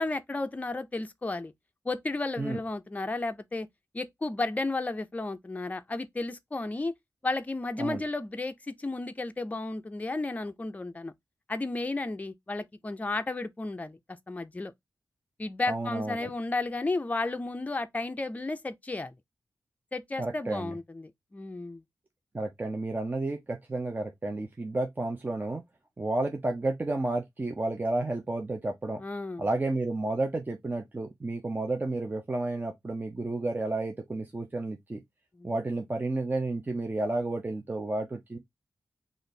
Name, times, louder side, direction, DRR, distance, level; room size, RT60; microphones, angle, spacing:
voice 1, 0.0-1.5 1.8-3.7 3.9-6.9 7.2-11.1 11.5-14.7 15.4-19.1 19.9-21.8 29.0-29.5 35.4-35.5, left 2 dB, 25° left, 0.5 m, -33 dB
voice 2, 15.7-16.3 20.2-20.8 22.3-25.6 26.0-29.0 29.4-35.0 35.4-38.4, right 2 dB, 30° right, 0.6 m, -31 dB
3.2 x 2.5 x 4.1 m
wide cardioid pair, 75°, 7 cm